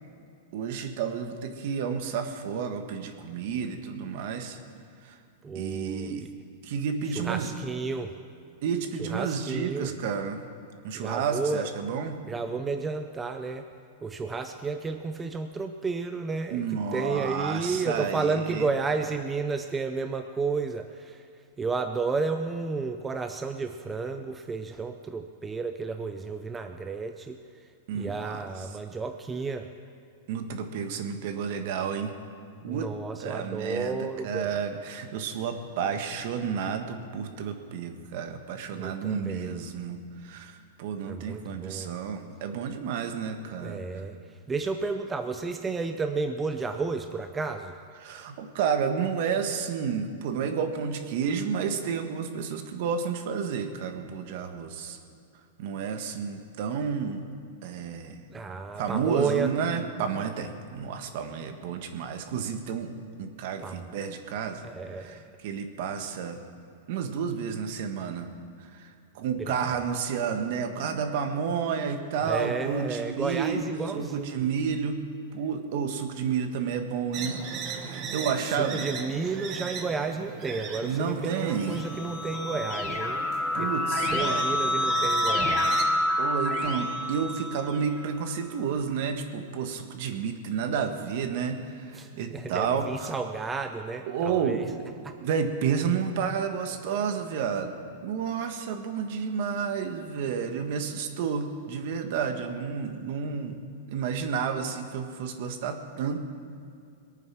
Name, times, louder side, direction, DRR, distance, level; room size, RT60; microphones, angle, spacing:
voice 1, 0.5-4.6 5.0-5.2 5.5-6.2 6.6-7.5 8.6-10.4 10.8-12.2 16.5-18.6 27.9-28.4 30.3-32.1 32.6-32.9 33.2-43.8 48.0-55.0 55.6-57.3 57.6-58.2 58.8-64.6 65.0-65.2 65.4-66.4 66.9-68.3 68.6-73.6 73.9-75.0 75.3-77.4 77.7-78.9 80.8-81.8 83.5-84.4 86.2-93.1 94.1-94.6 95.2-97.7 98.0-103.6 103.9-106.3, right 6 dB, 55° right, 7 dB, 1.4 m, -31 dB
voice 2, 5.4-6.3 7.1-8.1 9.0-9.9 10.9-11.7 12.3-13.7 14.0-29.7 32.7-34.6 38.7-39.6 41.1-41.9 43.6-47.8 58.3-59.5 63.6-63.9 64.6-65.4 69.4-69.8 72.2-74.4 78.1-83.3 83.5-83.7 84.1-85.7 91.9-94.7 95.0-95.2, right 4 dB, 10° right, 6 dB, 0.5 m, -32 dB
sound 1, 77.1-85.8, right 6 dB, 30° right, 1.3 m, -38 dB
Keyboard (musical), 81.4-88.1, left 1 dB, 30° left, 2.6 m, -28 dB
21.5 x 9.2 x 6.0 m, 2.5 s
supercardioid pair, 155°, 0 cm